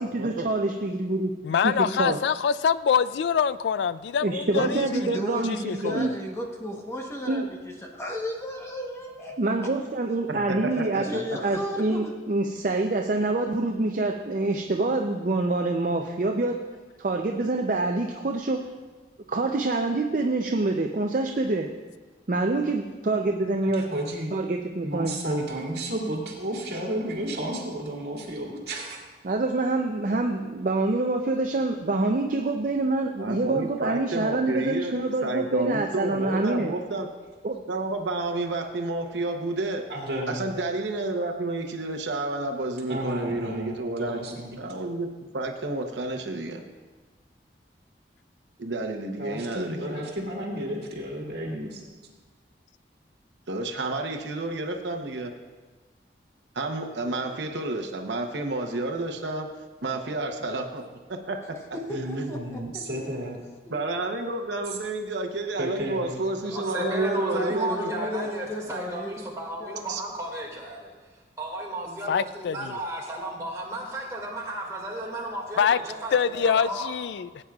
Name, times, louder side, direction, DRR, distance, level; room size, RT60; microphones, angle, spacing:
voice 1, 0.0-1.3 1.6-1.7 2.0-2.2 4.2-6.1 7.3-7.5 9.4-11.0 11.4-16.6 17.0-18.7 19.3-21.7 22.3-23.9 24.3-25.2 29.2-36.7 37.4-37.6, right 2 dB, 45° right, 2 dB, 0.5 m, -26 dB
voice 2, 1.4-5.2 5.4-6.1 72.1-72.8 75.6-75.8 76.1-77.4, left 7 dB, 75° left, 16 dB, 0.3 m, -25 dB
voice 3, 4.5-9.5 11.0-12.3 61.7-63.1 63.7-63.8 66.7-69.3 69.6-69.9, left 1 dB, 15° left, 0 dB, 1.0 m, -34 dB
voice 4, 10.3-11.0 33.2-34.9 35.2-37.1 37.7-39.8 40.3-45.1 45.3-46.6 48.6-50.1 53.5-55.3 56.5-59.5 59.8-60.8 61.1-61.6 63.7-68.1 69.9-70.0, right 2 dB, 80° right, 3 dB, 0.8 m, -30 dB
voice 5, 23.7-24.3 24.8-29.0 39.9-40.4 42.9-44.6 49.2-51.8 61.9-63.4 65.6-66.2, right 1 dB, 60° right, -2 dB, 2.1 m, -32 dB
voice 6, 66.4-70.9 71.4-76.9, right 1 dB, 20° right, -3 dB, 2.0 m, -34 dB
17.5 x 8.9 x 2.4 m, 1.3 s
head